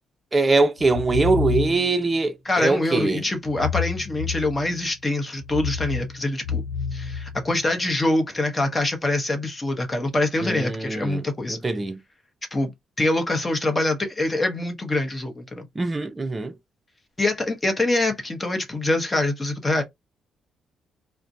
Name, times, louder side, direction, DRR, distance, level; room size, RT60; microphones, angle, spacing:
voice 1, 0.3-3.2 10.4-12.0 15.8-16.5, right 3 dB, 25° right, 0.5 m, -23 dB
sound 1, 0.8-2.1 3.4-4.9 5.4-7.9, left 5 dB, 80° left, 1.0 m, -29 dB
voice 2, 2.4-6.6 6.9-11.6 12.5-12.7 13.0-15.7 17.2-19.8, left 2 dB, 20° left, 0.9 m, -24 dB
2.4 x 2.1 x 2.6 m
cardioid pair, 90°, 0 cm